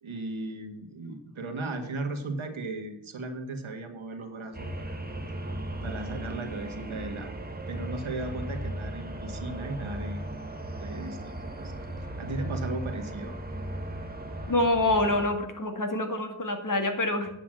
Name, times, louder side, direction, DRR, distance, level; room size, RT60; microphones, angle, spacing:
voice 1, 0.0-5.0 5.8-7.3 7.7-10.2 10.8-11.7 12.0-13.4, right 2 dB, 75° right, 5 dB, 1.7 m, -36 dB
sound 1, 4.5-15.3, right 1 dB, 20° right, 1.5 m, -36 dB
voice 2, 14.5-17.3, left 2 dB, 40° left, 5 dB, 1.8 m, -26 dB
9.5 x 5.8 x 7.6 m, 0.87 s
wide cardioid pair, 65°, 48 cm